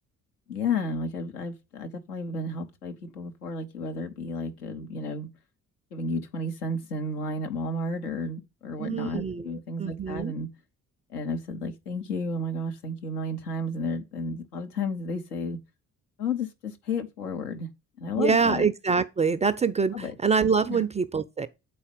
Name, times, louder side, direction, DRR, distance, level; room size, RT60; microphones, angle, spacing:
voice 1, 0.5-5.3 5.9-10.5 11.1-15.6 16.2-17.7 18.0-18.7 19.9-20.1 20.7-20.8, left 2 dB, 80° left, 0.9 m, -32 dB
voice 2, 8.8-10.3 18.2-21.5, right 5 dB, 15° right, 0.4 m, -25 dB
8.5 x 4.2 x 5.2 m
figure-of-eight pair, 45°, 45 cm